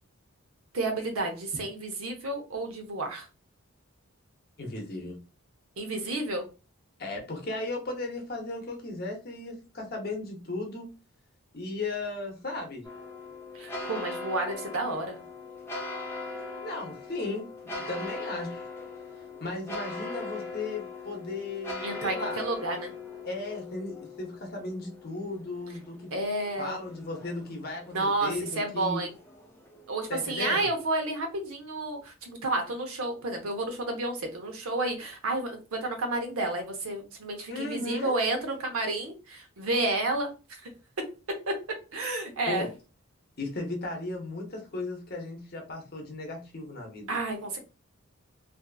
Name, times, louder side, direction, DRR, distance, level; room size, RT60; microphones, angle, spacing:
voice 1, 0.7-3.3 5.8-6.5 13.5-15.2 21.8-22.9 26.1-26.8 27.9-29.1 29.9-40.3 41.5-41.6 41.9-42.7 47.1-47.6, right 2 dB, 75° right, 4 dB, 0.7 m, -31 dB
voice 2, 4.6-5.2 7.0-10.9 11.5-12.8 16.6-18.7 19.4-22.4 23.2-25.9 26.6-29.0 30.1-30.7 37.5-38.2 42.5-42.7 43.4-47.2, left 2 dB, 45° left, 2 dB, 0.7 m, -36 dB
sound 1, 12.8-30.4, left 3 dB, 10° left, 0.4 m, -41 dB
2.6 x 2.4 x 2.3 m, 0.32 s
head